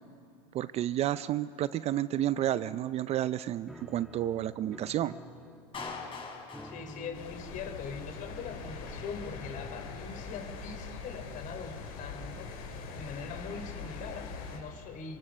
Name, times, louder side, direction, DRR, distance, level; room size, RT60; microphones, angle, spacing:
voice 1, 0.5-5.1, right 12 dB, 35° right, 15 dB, 0.5 m, -31 dB
Piano, 3.7-10.5, left 1 dB, ahead, 1.3 m, -51 dB
Clapping, 5.7-7.8, left 4 dB, 30° left, 6.1 m, -43 dB
voice 2, 6.6-15.2, left 5 dB, 45° left, 7 dB, 4.2 m, -42 dB
sound 1, 7.1-14.6, left 4 dB, 75° left, 6.3 m, -42 dB
28.0 x 23.0 x 6.7 m, 2.7 s
supercardioid pair, 125°, 19 cm